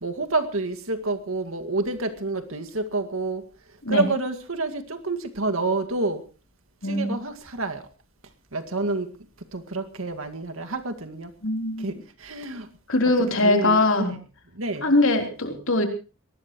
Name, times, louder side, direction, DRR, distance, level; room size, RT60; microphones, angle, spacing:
voice 1, 0.0-3.4 3.9-6.2 6.9-7.8 8.5-9.1 9.5-11.3 11.8-11.9 12.2-12.7 13.4-14.2 14.6-14.9, right 3 dB, 75° right, 8 dB, 2.1 m, -28 dB
voice 2, 6.8-7.1 11.4-11.9 12.9-14.1 14.8-15.8, left 2 dB, 65° left, 4 dB, 3.8 m, -21 dB
22.0 x 19.0 x 3.1 m, 0.34 s
head